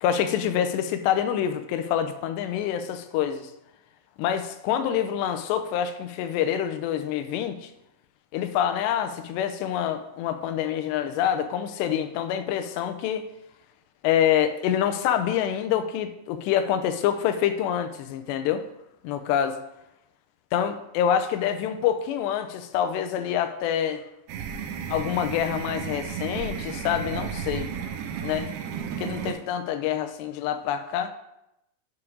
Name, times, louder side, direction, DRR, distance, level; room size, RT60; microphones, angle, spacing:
voice 1, 0.0-3.5 4.2-7.7 8.3-13.2 14.0-18.6 19.0-19.6 20.5-24.0 24.9-27.7 28.2-28.5 29.0-31.1, left 9 dB, 85° left, 8 dB, 2.7 m, -26 dB
sound 1, 24.3-29.3, right 8 dB, 75° right, 2.6 m, -33 dB
8.4 x 4.9 x 4.9 m, 0.85 s
omnidirectional pair, 5.0 m